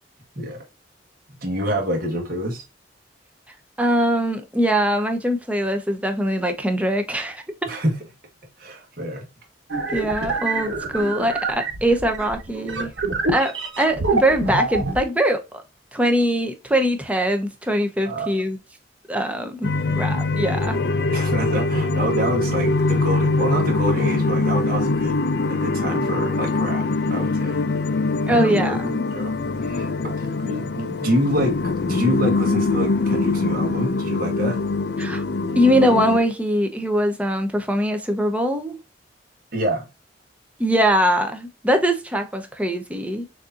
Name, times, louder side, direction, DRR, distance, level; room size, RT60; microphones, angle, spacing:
voice 1, 1.4-2.6 7.7-8.0 8.6-9.3 18.0-18.3 21.1-25.2 25.5-26.8 27.1-27.6 28.3-29.3 29.6-31.6 31.8-34.6 35.4-35.6 39.5-39.8, equal, 50° right, 1.3 m, -26 dB
voice 2, 3.8-7.4 9.9-12.9 13.3-15.4 15.9-18.6 19.1-20.8 28.3-29.1 35.0-35.2 35.6-38.8 40.6-43.3, equal, 5° right, 0.7 m, -22 dB
sound 1, 9.7-15.0, right 3 dB, 85° right, 1.2 m, -26 dB
sound 2, 19.6-36.2, left 3 dB, 60° left, 0.5 m, -23 dB
6.4 x 2.7 x 2.5 m
head